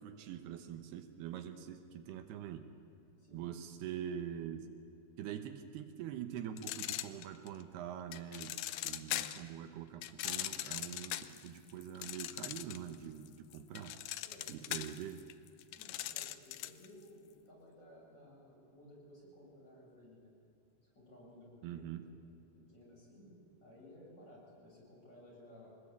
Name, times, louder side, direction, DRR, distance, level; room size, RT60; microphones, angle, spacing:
voice 1, 0.0-2.7 3.3-4.7 5.2-8.6 8.8-14.0 14.5-15.2 21.6-22.0, right 9 dB, 80° right, 7 dB, 3.0 m, -44 dB
sound 1, 6.6-7.6 8.1-9.5 10.0-13.0 13.3-16.9, left 14 dB, 85° left, 1.9 m, -40 dB
voice 2, 15.7-20.3 20.8-21.9 22.5-25.8, left 1 dB, 25° left, -5 dB, 8.2 m, -57 dB
24.5 x 20.0 x 8.6 m, 2.7 s
omnidirectional pair, 4.7 m